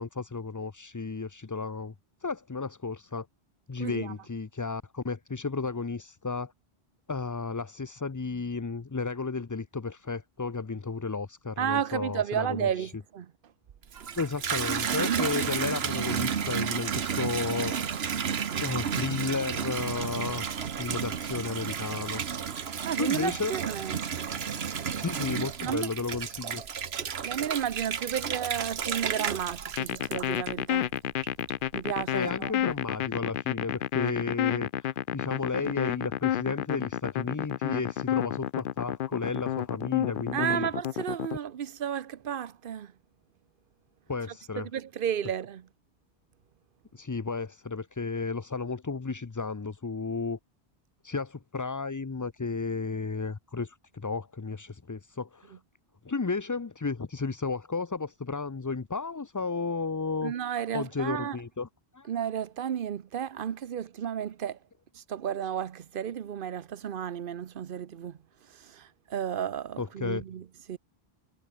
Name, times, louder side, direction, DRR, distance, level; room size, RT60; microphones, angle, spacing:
voice 1, 0.0-1.9 2.2-3.3 3.7-6.5 7.1-12.9 14.2-17.8 18.6-22.2 23.0-23.5 24.9-26.6 32.1-34.9 35.1-40.7 44.1-44.7 46.9-50.4 51.0-55.6 56.0-60.3 60.7-61.7 61.9-62.1 69.8-70.2, left 4 dB, 25° left, 0.4 m, -33 dB
voice 2, 3.8-4.1 11.6-13.3 15.0-15.2 22.8-24.0 24.6-24.8 25.6-25.9 27.0-30.9 31.7-32.5 40.3-42.9 44.6-45.7 60.2-61.4 62.1-64.6 64.9-68.2 68.5-70.8, right 9 dB, 60° right, 0.9 m, -33 dB
Water tap faucet / Bathtub (filling or washing), 13.8-30.8 31.2-31.8, right 7 dB, 75° right, 1.4 m, -32 dB
sound 1, 29.8-41.4, left 11 dB, 65° left, 0.7 m, -30 dB
omnidirectional pair, 1.1 m